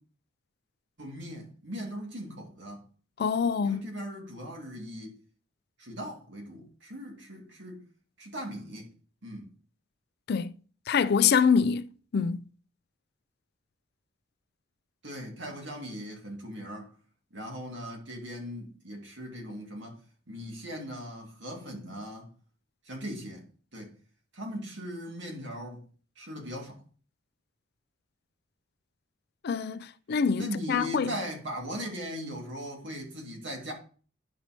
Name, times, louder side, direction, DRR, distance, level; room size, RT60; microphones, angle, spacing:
voice 1, 1.0-2.8 3.6-5.1 5.8-7.9 8.2-8.9 9.2-9.5 15.0-16.9 17.3-20.0 20.3-22.3 22.8-23.4 23.7-23.9 24.3-25.8 26.2-26.8 30.3-33.7, equal, 65° right, 2.4 m, -39 dB
voice 2, 3.2-3.8 10.3-10.5 10.9-12.4 29.4-31.1, left 6 dB, 55° left, 0.4 m, -25 dB
11.0 x 5.4 x 3.0 m
head